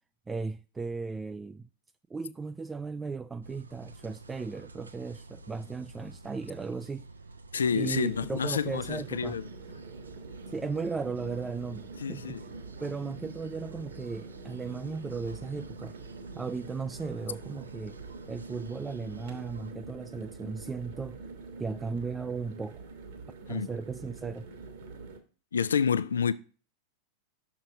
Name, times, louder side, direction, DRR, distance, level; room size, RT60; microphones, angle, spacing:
voice 1, 0.3-1.7 2.1-7.0 7.7-9.4 10.5-12.4 12.8-16.0 16.4-18.0 18.3-21.2 21.6-22.8 23.5-24.5, right 4 dB, 15° right, 0.3 m, -36 dB
sound 1, 3.4-19.7, right 2 dB, 75° right, 0.6 m, -50 dB
voice 2, 7.5-9.5 12.0-12.4 23.5-23.7 25.5-26.3, left 6 dB, 70° left, 0.4 m, -28 dB
sound 2, 7.5-25.2, right 3 dB, 55° right, 1.4 m, -45 dB
6.3 x 5.8 x 5.8 m
figure-of-eight pair, 90°, 0 cm